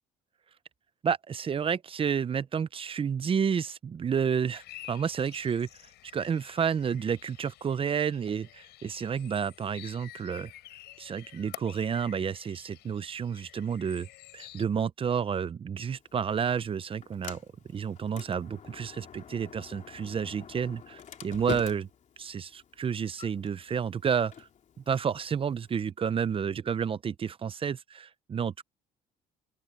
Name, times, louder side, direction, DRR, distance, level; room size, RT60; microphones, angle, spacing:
voice 1, 1.0-5.7 6.1-10.5 11.0-14.1 14.3-17.4 17.7-21.9 22.2-24.5 24.9-28.6, right 7 dB, 30° right, 0.7 m, -30 dB
sound 1, 4.5-14.6, left 16 dB, 80° left, 7.7 m, -50 dB
Sliding door, 15.9-25.9, left 8 dB, 45° left, 3.1 m, -46 dB
open air
cardioid pair, 110°, 17 cm